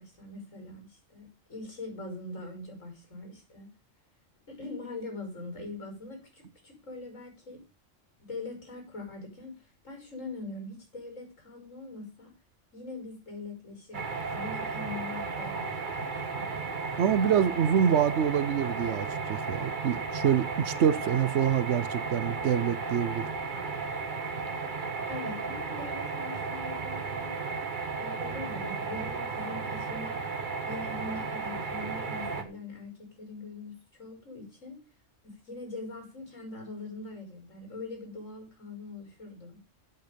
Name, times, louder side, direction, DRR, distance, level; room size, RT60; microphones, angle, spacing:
voice 1, 0.0-3.7 4.5-7.6 8.3-12.3 12.7-15.7 16.0-16.6 25.1-27.4 28.0-30.2 30.6-34.8 35.2-39.6, left 3 dB, 85° left, 5.9 m, -42 dB
sound 1, 13.9-32.4, right 4 dB, 40° right, 1.5 m, -34 dB
voice 2, 17.0-23.3, right 8 dB, 65° right, 1.0 m, -26 dB
12.0 x 8.1 x 5.1 m
omnidirectional pair, 1.3 m